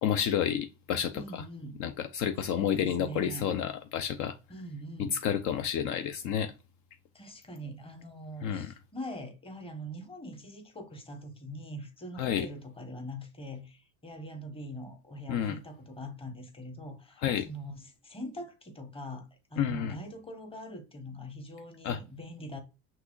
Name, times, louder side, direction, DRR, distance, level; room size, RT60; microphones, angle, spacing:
voice 1, 0.0-1.4 1.8-4.4 5.1-6.5 8.4-8.7 12.2-12.5 15.3-15.6 17.2-17.5 19.6-20.0 21.8-22.0, left 9 dB, 60° left, 0.6 m, -30 dB
voice 2, 1.1-1.8 2.4-3.5 4.5-5.2 7.1-22.6, equal, 15° left, 1.2 m, -43 dB
6.0 x 3.0 x 2.4 m
supercardioid pair, 105°, 35 cm